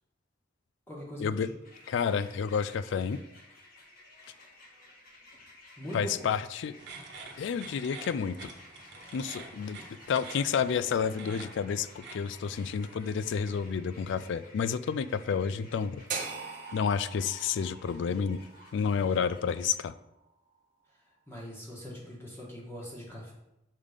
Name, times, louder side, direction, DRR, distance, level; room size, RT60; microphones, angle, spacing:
voice 1, 0.9-1.5 5.8-6.3 9.5-9.6 21.3-23.3, equal, 15° left, -5 dB, 1.3 m, -42 dB
sound 1, 1.6-19.8, left 2 dB, 50° left, 1.3 m, -54 dB
voice 2, 1.9-3.2 5.9-6.7 7.4-8.5 9.1-9.8 10.1-16.0 16.7-18.5 18.7-19.9, left 6 dB, 65° left, 15 dB, 0.3 m, -30 dB
sound 2, 6.8-13.7, right 3 dB, 65° right, 1.2 m, -48 dB
sound 3, 16.1-20.2, right 5 dB, 45° right, 1.0 m, -41 dB
6.4 x 3.7 x 5.1 m, 0.89 s
head